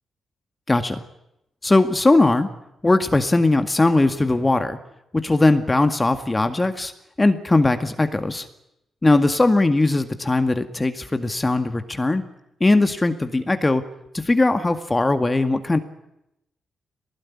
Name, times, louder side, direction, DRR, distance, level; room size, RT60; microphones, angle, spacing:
voice 1, 0.7-1.0 1.6-2.5 2.8-4.8 5.1-6.9 7.2-8.5 9.0-12.2 12.6-13.8 14.1-15.8, left 2 dB, 25° left, 8 dB, 1.9 m, -19 dB
19.0 x 19.0 x 9.8 m, 0.85 s
supercardioid pair, 50°, 0 cm